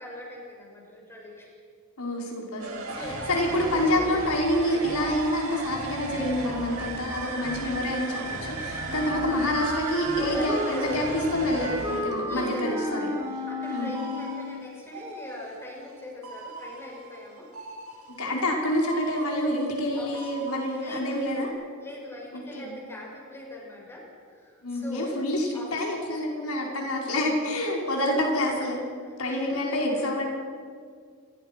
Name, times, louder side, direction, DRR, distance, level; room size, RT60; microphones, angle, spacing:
voice 1, 0.0-1.5 2.8-4.2 8.8-9.2 10.3-11.3 12.1-12.8 13.2-17.5 19.9-20.3 20.6-21.5 21.8-24.1 24.3-25.1 25.5-25.8 26.1-26.7 27.8-28.2 29.0-30.2, left 1 dB, 10° left, -2 dB, 6.9 m, -41 dB
voice 2, 2.0-13.1 13.7-13.9 18.2-21.5 22.3-22.7 24.6-28.8 29.2-30.3, left 1 dB, 85° left, -1 dB, 5.5 m, -27 dB
sound 1, 2.6-15.9 16.2-18.6 18.8-21.5, right 2 dB, 85° right, 7.3 m, -37 dB
Wind instrument woodwind instrument, 8.9-14.7, left 1 dB, 20° right, 4.0 m, -32 dB
28.5 x 22.5 x 6.2 m, 2.1 s
head